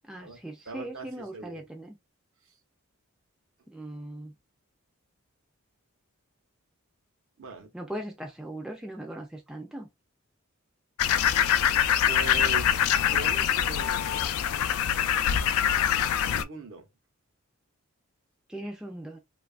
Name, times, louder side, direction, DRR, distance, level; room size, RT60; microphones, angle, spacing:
voice 1, 0.1-2.0 3.7-4.3 7.7-9.9 18.5-19.2, right 1 dB, 5° right, 0.3 m, -39 dB
voice 2, 0.7-1.7 7.4-7.7 12.0-14.6 16.3-16.9, right 3 dB, 65° right, 0.7 m, -41 dB
sound 1, 11.0-16.4, left 9 dB, 80° left, 0.3 m, -24 dB
2.8 x 2.3 x 2.3 m
head